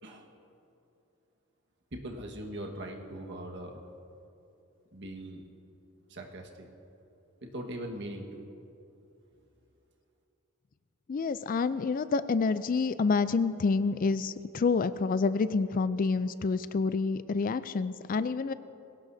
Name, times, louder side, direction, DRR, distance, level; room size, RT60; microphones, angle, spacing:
voice 1, 0.0-0.3 1.9-3.8 4.9-5.4 6.1-6.7 7.4-8.4, right 1 dB, 55° right, 2 dB, 1.5 m, -40 dB
voice 2, 11.1-18.5, left 4 dB, 40° left, 14 dB, 0.4 m, -28 dB
22.0 x 17.5 x 2.7 m, 2.8 s
head